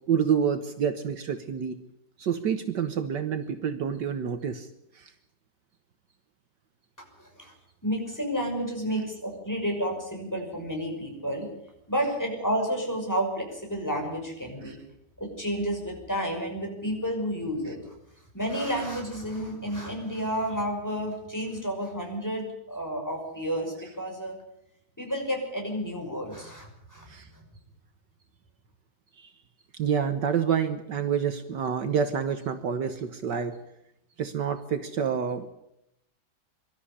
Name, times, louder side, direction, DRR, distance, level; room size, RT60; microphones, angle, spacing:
voice 1, 0.1-1.8 2.2-4.7 4.9-5.1 14.6-14.8 27.1-27.3 29.2-29.3 29.7-33.6 34.2-35.5, right 7 dB, 65° right, 9 dB, 1.8 m, -28 dB
voice 2, 7.2-7.5 7.8-11.5 11.9-14.8 15.2-17.9 18.3-24.3 25.0-27.4, equal, 10° left, 1 dB, 6.0 m, -31 dB
24.5 x 13.0 x 9.9 m, 0.80 s
omnidirectional pair, 2.0 m